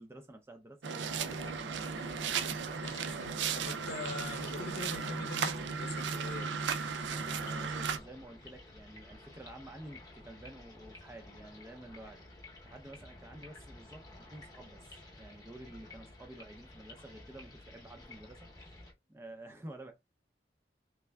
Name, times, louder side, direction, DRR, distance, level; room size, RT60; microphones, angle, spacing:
voice 1, 0.0-1.7 7.1-12.3 12.6-14.8 15.2-18.5 19.1-19.9, right 1 dB, 15° right, 0.5 m, -50 dB
sound 1, 0.8-8.0, right 6 dB, 80° right, 0.4 m, -35 dB
sound 2, 1.0-18.9, left 2 dB, 20° left, 0.8 m, -53 dB
voice 2, 2.7-6.5, left 3 dB, 60° left, 0.7 m, -43 dB
3.4 x 3.3 x 2.3 m
head